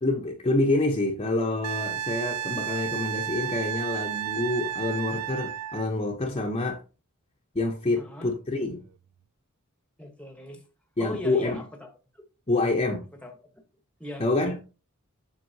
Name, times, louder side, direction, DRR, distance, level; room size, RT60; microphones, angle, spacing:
voice 1, 0.0-6.8 7.5-8.9 11.0-11.6 12.5-13.1 14.2-14.6, left 2 dB, 25° left, 0.9 m, -27 dB
Wind instrument woodwind instrument, 1.6-5.9 8.6-8.7, right 10 dB, 90° right, 0.4 m, -32 dB
voice 2, 8.0-8.3 10.0-10.6 11.0-12.2 13.2-13.6 14.0-14.2, left 1 dB, 5° left, 1.2 m, -40 dB
7.8 x 6.1 x 2.8 m
head